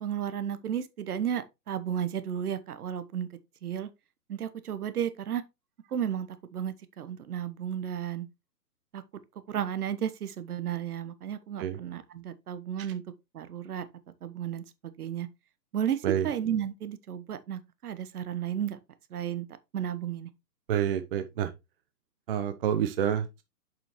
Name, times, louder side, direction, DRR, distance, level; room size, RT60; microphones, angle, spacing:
voice 1, 0.0-3.3 3.6-3.9 4.3-5.4 5.9-8.3 8.9-9.0 9.5-13.0 13.3-13.8 14.2-15.3 15.7-18.8 19.1-19.5 19.7-20.3, right 9 dB, 65° right, 1.1 m, -33 dB
voice 2, 20.7-21.5 22.3-23.4, right 9 dB, 35° right, 0.7 m, -28 dB
7.1 x 5.5 x 3.0 m
hypercardioid pair, 140°, 49 cm